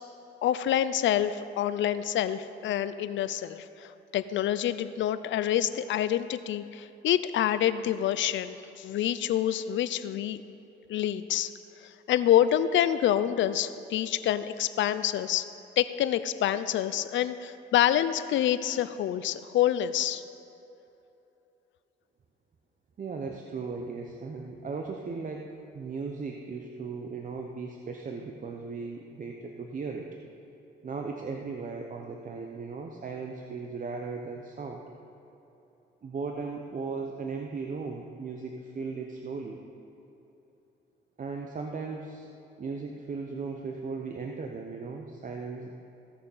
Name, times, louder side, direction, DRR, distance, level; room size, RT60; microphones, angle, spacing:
voice 1, 0.4-10.4 10.9-11.5 11.8-15.5 15.8-20.2, left 11 dB, 70° left, 13 dB, 0.5 m, -27 dB
voice 2, 23.0-30.1 30.8-34.8 36.0-39.6 41.2-42.3 42.6-45.8, right 4 dB, 40° right, 2 dB, 0.9 m, -37 dB
16.0 x 6.6 x 5.5 m, 3.0 s
cardioid pair, 90°, 20 cm